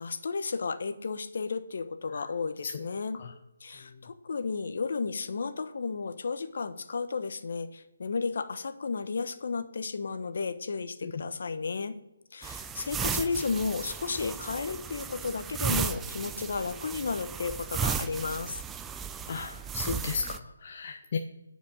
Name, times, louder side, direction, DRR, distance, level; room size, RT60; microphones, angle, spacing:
voice 1, 0.0-3.2 3.6-12.0 12.3-18.6, left 4 dB, 55° left, 10 dB, 1.0 m, -33 dB
sound 1, 12.4-20.4, right 7 dB, 10° right, 0.3 m, -35 dB
voice 2, 19.3-21.2, left 5 dB, 40° left, 3 dB, 0.7 m, -35 dB
9.9 x 5.2 x 6.5 m, 0.96 s
hypercardioid pair, 165°, 0 cm